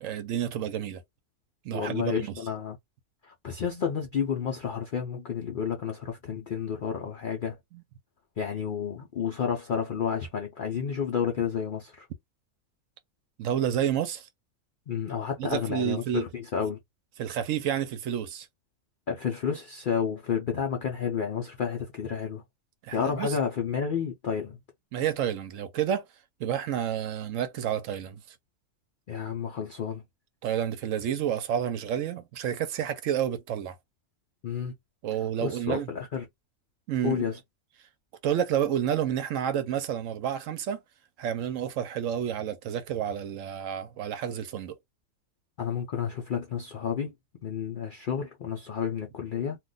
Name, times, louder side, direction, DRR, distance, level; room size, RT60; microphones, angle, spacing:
voice 1, 0.0-1.0 1.6-2.4 7.7-7.8 13.4-14.3 15.4-16.2 17.2-18.5 22.8-23.4 24.9-26.0 26.4-28.2 30.4-33.8 35.0-35.9 36.9-37.2 38.2-40.8 41.2-44.8, right 9 dB, 70° right, 0.9 m, -30 dB
voice 2, 1.7-2.8 3.2-7.6 8.4-12.1 14.9-16.8 19.1-22.4 22.9-24.6 29.1-30.0 34.4-34.7 35.4-36.3 37.0-37.4 45.6-47.1 47.4-49.6, left 7 dB, 65° left, 0.5 m, -31 dB
2.4 x 2.2 x 3.7 m
omnidirectional pair, 1.5 m